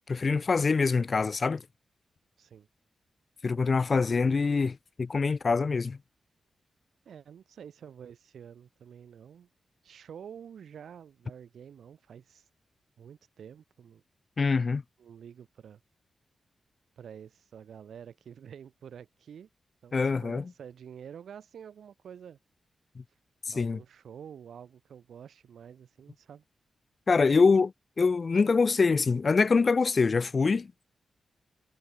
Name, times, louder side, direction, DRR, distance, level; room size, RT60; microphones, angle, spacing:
voice 1, 0.1-1.6 3.4-6.0 14.4-14.8 19.9-20.4 23.6-23.8 27.1-27.7 28.0-30.7, left 4 dB, 35° left, 0.5 m, -24 dB
voice 2, 7.1-9.5 9.8-12.4 13.0-14.0 15.0-15.8 17.0-19.5 19.8-22.4 23.5-26.4, right 8 dB, 85° right, 3.7 m, -48 dB
wide cardioid pair, 175°, 0 cm